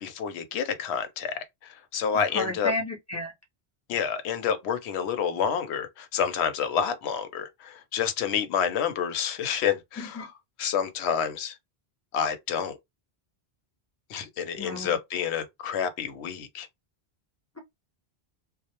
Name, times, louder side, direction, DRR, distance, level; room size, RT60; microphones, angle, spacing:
voice 1, 0.0-1.3 1.9-2.7 3.9-10.3 10.6-11.5 12.1-12.8 14.1-16.7, left 7 dB, 90° left, 0.8 m, -28 dB
voice 2, 2.3-3.3 10.0-10.3 14.6-14.9, left 1 dB, 25° left, 0.4 m, -32 dB
2.1 x 2.0 x 2.8 m
omnidirectional pair, 1.1 m